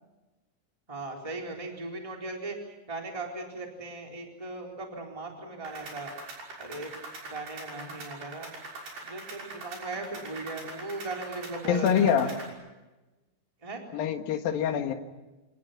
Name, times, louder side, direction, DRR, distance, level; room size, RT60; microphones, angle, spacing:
voice 1, 0.9-2.6 2.9-6.1 6.6-6.9 7.2-8.5 9.0-12.4 13.6-13.8, right 2 dB, 10° right, 1 dB, 3.7 m, -38 dB
sound 1, 5.6-12.5, right 3 dB, 75° right, 8.1 m, -43 dB
voice 2, 11.7-12.3 13.9-14.9, left 8 dB, 65° left, 6 dB, 3.3 m, -25 dB
29.0 x 27.5 x 5.9 m, 1.1 s
omnidirectional pair, 4.8 m